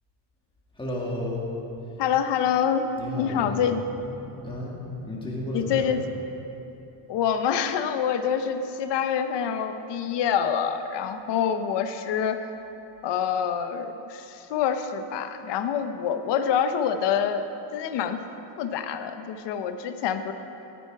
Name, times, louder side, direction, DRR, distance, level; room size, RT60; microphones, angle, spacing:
voice 1, 0.8-1.5 3.0-4.8 5.0-5.9, left 1 dB, 10° left, -4 dB, 1.8 m, -33 dB
voice 2, 2.0-3.8 5.5-6.0 7.1-12.4 13.0-17.4 17.7-18.2 18.6-20.3, left 8 dB, 60° left, 9 dB, 0.8 m, -26 dB
14.0 x 10.0 x 4.7 m, 2.9 s
cardioid pair, 170°, 46 cm